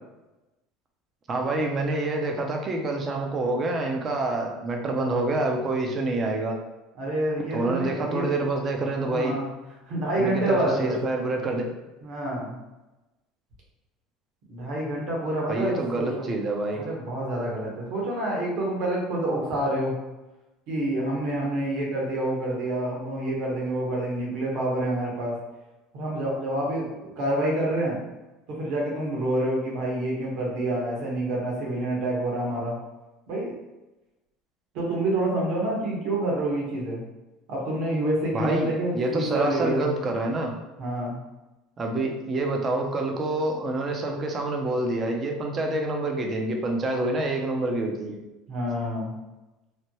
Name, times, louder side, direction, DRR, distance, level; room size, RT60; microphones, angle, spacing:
voice 1, 1.3-6.6 7.5-9.4 10.2-11.7 15.5-16.8 38.3-40.5 41.8-48.2, right 2 dB, 35° right, 2 dB, 0.6 m, -27 dB
voice 2, 6.9-8.3 9.0-9.5 9.9-10.9 12.0-12.5 14.5-16.3 16.7-19.9 20.7-25.4 25.9-28.0 28.5-32.8 33.3-33.5 34.7-37.0 37.5-39.8 40.8-41.2 48.5-49.1, right 1 dB, 65° right, -3 dB, 1.2 m, -27 dB
3.2 x 2.1 x 2.9 m, 1.0 s
hypercardioid pair, 85°, 0 cm